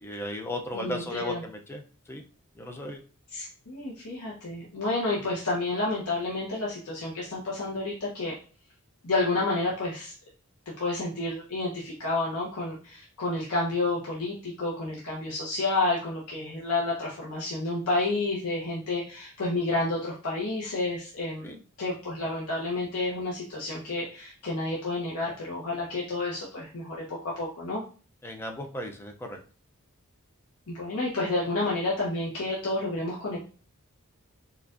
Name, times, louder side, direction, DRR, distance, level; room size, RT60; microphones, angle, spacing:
voice 1, 0.0-1.8 2.1-2.2 2.6-3.0 21.4-21.6 28.2-29.4, left 1 dB, 10° left, 3 dB, 0.4 m, -35 dB
voice 2, 0.7-1.4 3.3-8.4 9.0-10.1 10.8-27.8 30.7-33.4, left 2 dB, 90° left, -5 dB, 0.9 m, -30 dB
4.7 x 2.4 x 2.4 m, 0.39 s
head